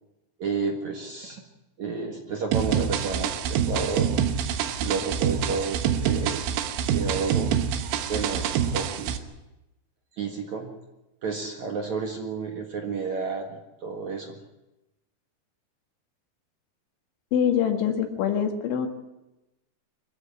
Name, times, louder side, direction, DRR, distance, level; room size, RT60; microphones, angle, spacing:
voice 1, 0.4-1.4 1.8-4.1 4.8-6.5 6.9-7.8 8.1-9.2 10.2-10.7 11.2-14.4, right 4 dB, 55° right, 2 dB, 2.3 m, -31 dB
sound 1, 2.5-9.2, right 8 dB, 90° right, 3.7 m, -26 dB
voice 2, 17.3-18.9, left 8 dB, 80° left, 4 dB, 4.2 m, -24 dB
24.0 x 14.5 x 8.6 m, 0.99 s
omnidirectional pair, 5.4 m